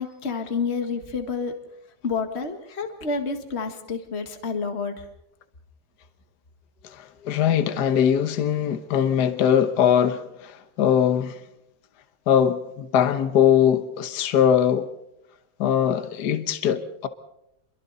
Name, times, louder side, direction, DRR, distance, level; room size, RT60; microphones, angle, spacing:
voice 1, 0.0-1.5 2.0-5.0, left 4 dB, 35° left, 1.9 m, -29 dB
voice 2, 6.8-11.4 12.3-14.9 15.6-17.1, left 9 dB, 70° left, 1.6 m, -21 dB
29.0 x 23.0 x 4.1 m
omnidirectional pair, 1.9 m